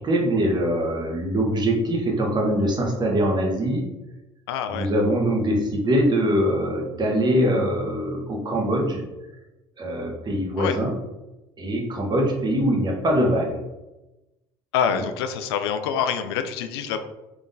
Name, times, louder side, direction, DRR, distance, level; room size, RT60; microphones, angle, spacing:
voice 1, 0.0-3.8 4.7-9.0 9.8-10.9 11.6-13.6, equal, 35° right, 0 dB, 1.1 m, -23 dB
voice 2, 4.5-4.9 10.6-10.8 14.7-17.0, left 7 dB, 85° left, 8 dB, 0.4 m, -26 dB
3.6 x 3.5 x 2.6 m, 1.0 s
hypercardioid pair, 70°, 13 cm